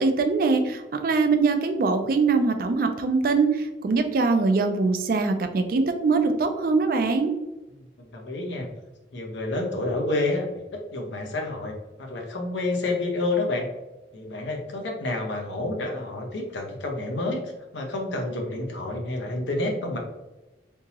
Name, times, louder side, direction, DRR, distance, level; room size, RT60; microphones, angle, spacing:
voice 1, 0.0-7.3, right 4 dB, 50° right, 6 dB, 0.4 m, -22 dB
voice 2, 8.1-8.7 9.1-10.6 10.9-11.7 12.0-13.7 14.1-17.4 17.7-20.0, left 2 dB, 80° left, 1 dB, 0.7 m, -29 dB
3.5 x 2.8 x 2.8 m, 1.0 s
head